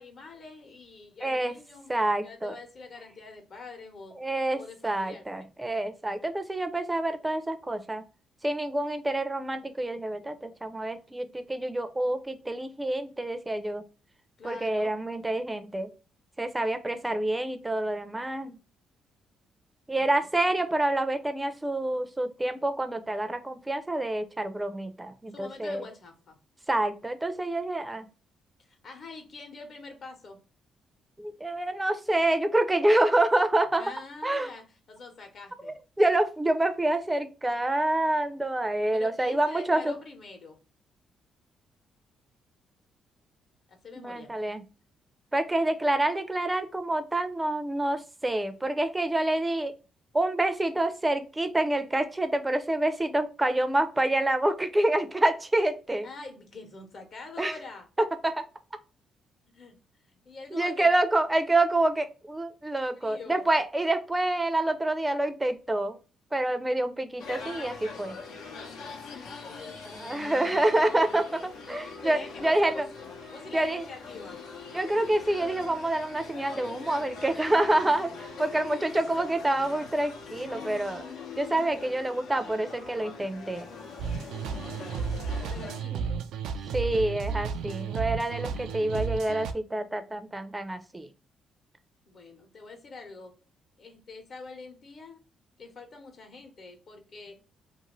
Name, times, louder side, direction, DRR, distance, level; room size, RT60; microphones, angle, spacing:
voice 1, 0.0-1.9 2.2-4.2 4.5-5.5 14.4-14.9 19.9-20.6 25.3-26.4 28.6-30.4 33.8-35.8 38.9-40.6 43.7-44.3 56.0-57.9 59.5-59.8 60.1-60.9 62.9-63.4 69.0-70.6 71.6-72.8 73.3-74.4 84.7-85.1 85.4-86.3 92.1-93.4 93.8-95.2 95.6-97.4, left 3 dB, 55° left, 0.9 m, -45 dB
voice 2, 1.2-1.6 1.9-2.6 4.2-8.0 8.4-13.8 14.4-15.9 16.4-18.6 19.9-25.8 26.7-28.1 31.2-33.8 34.2-34.5 35.6-39.9 43.9-44.6 45.3-49.7 50.1-56.1 57.4-57.5 58.0-58.5 60.5-66.0 66.3-68.2 69.9-72.9 73.5-73.8 74.7-78.1 78.4-81.1 81.4-83.7 85.9-86.0 86.7-91.1, right 1 dB, 15° right, 0.5 m, -27 dB
sound 1, 67.2-85.8, left 4 dB, 90° left, 0.8 m, -43 dB
sound 2, 84.0-89.5, right 6 dB, 90° right, 0.3 m, -33 dB
2.5 x 2.5 x 3.0 m
cardioid pair, 90°, 0 cm